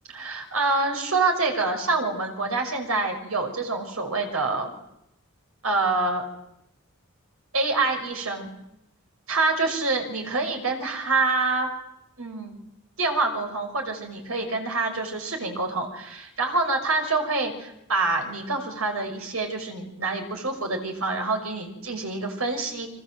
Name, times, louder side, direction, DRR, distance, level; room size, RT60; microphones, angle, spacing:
voice 1, 0.1-4.7 5.6-6.2 7.5-8.5 9.3-11.7 12.2-12.5 13.0-22.9, right 3 dB, 80° right, 4 dB, 6.0 m, -26 dB
30.0 x 25.0 x 7.9 m, 0.84 s
head